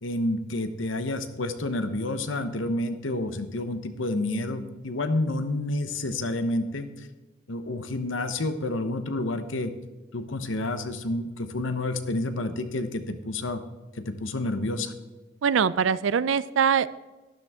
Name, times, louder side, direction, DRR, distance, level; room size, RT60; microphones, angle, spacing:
voice 1, 0.0-6.9 7.5-9.7 10.1-13.6 14.0-14.9, left 2 dB, 80° left, 9 dB, 1.0 m, -29 dB
voice 2, 15.4-16.9, right 7 dB, 75° right, 18 dB, 0.4 m, -22 dB
12.0 x 11.0 x 3.6 m, 1.2 s
head